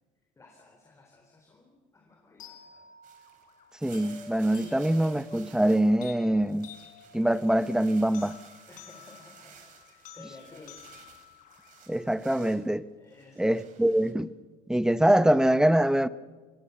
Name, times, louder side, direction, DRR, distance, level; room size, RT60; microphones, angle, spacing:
voice 1, 0.4-2.9 8.7-10.8 13.0-13.9, left 3 dB, 20° left, 3.8 m, -54 dB
sound 1, 2.4-12.4, left 5 dB, 60° left, 5.7 m, -50 dB
sound 2, 3.0-6.0 6.3-12.7 13.1-14.1, right 8 dB, 60° right, 4.2 m, -55 dB
voice 2, 3.8-6.7 7.1-8.4 11.9-12.9 13.4-14.3 14.7-16.1, right 1 dB, 5° right, 0.8 m, -24 dB
25.0 x 20.5 x 7.1 m
cardioid pair, 120°, 15 cm